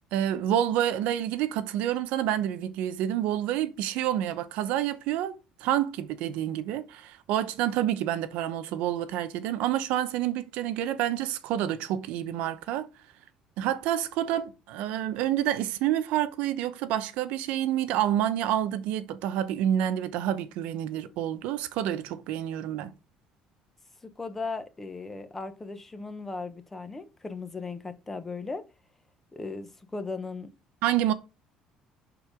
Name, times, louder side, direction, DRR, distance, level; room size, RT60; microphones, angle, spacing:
voice 1, 0.1-5.3 5.6-12.9 13.6-22.9 30.8-31.1, right 11 dB, 75° right, 0.9 m, -28 dB
voice 2, 24.0-28.6 29.3-30.5, left 3 dB, 10° left, 0.9 m, -37 dB
11.0 x 3.9 x 5.0 m
cardioid pair, 170°, 2 cm